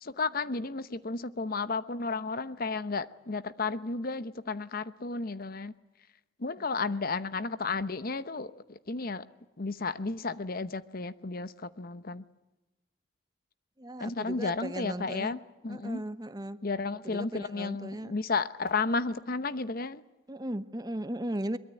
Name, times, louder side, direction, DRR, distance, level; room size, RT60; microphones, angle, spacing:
voice 1, 0.0-5.7 6.4-9.3 9.6-12.2 14.0-16.0 16.6-20.0, left 4 dB, 50° left, 14 dB, 0.9 m, -33 dB
voice 2, 13.8-15.4 15.7-16.6 17.0-18.1 20.3-21.6, right 1 dB, 20° right, 12 dB, 0.9 m, -37 dB
23.0 x 22.5 x 9.0 m, 1.0 s
head